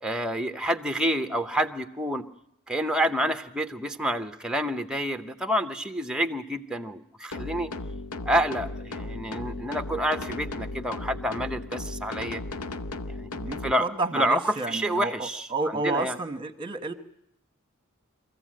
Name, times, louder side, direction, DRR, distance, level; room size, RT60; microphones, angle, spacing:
voice 1, 0.0-2.2 2.7-7.7 8.2-12.4 13.2-13.3 13.6-13.8 14.1-14.4 14.7-15.5 15.8-16.2, equal, 5° right, 7 dB, 0.8 m, -28 dB
sound 1, 7.3-13.7, left 2 dB, 80° left, 0.8 m, -36 dB
voice 2, 13.3-16.9, right 3 dB, 20° right, 7 dB, 1.2 m, -31 dB
24.0 x 15.0 x 7.6 m, 0.78 s
head